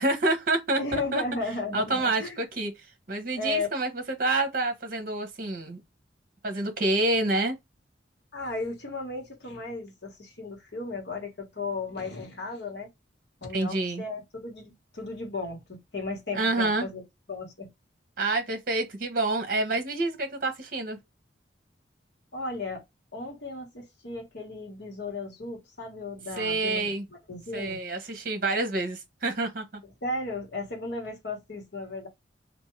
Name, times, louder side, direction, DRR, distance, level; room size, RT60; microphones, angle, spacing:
voice 1, 0.0-1.2 1.7-2.7 3.1-5.8 6.4-7.6 13.5-14.0 16.3-16.9 18.2-21.0 26.4-27.0 27.5-29.8, right 2 dB, 50° right, 0.9 m, -28 dB
voice 2, 0.8-2.4 3.3-3.7 8.3-12.9 13.4-17.0 17.3-17.7 22.3-22.8 23.1-27.8 29.8-32.1, left 3 dB, 60° left, 1.4 m, -35 dB
3.5 x 2.6 x 3.1 m
head